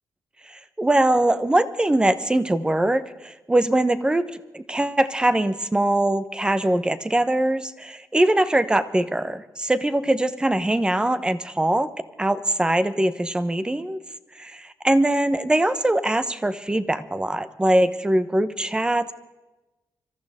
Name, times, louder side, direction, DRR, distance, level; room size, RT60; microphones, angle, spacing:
voice 1, 0.5-11.9 12.2-14.0 14.4-19.1, right 1 dB, 15° right, 12 dB, 1.0 m, -22 dB
25.0 x 14.5 x 3.7 m, 1.1 s
cardioid pair, 100°, 7 cm